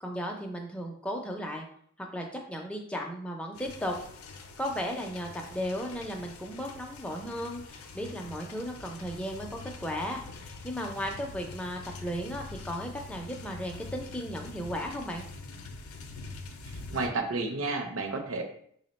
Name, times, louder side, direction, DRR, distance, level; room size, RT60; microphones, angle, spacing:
voice 1, 0.0-1.6 2.1-4.0 4.6-15.2, equal, 5° left, 1 dB, 0.4 m, -35 dB
sound 1, 3.5-17.1, left 3 dB, 85° left, 0.4 m, -45 dB
voice 2, 16.7-18.4, right 3 dB, 65° right, 4 dB, 0.6 m, -31 dB
3.5 x 2.1 x 4.0 m, 0.63 s
head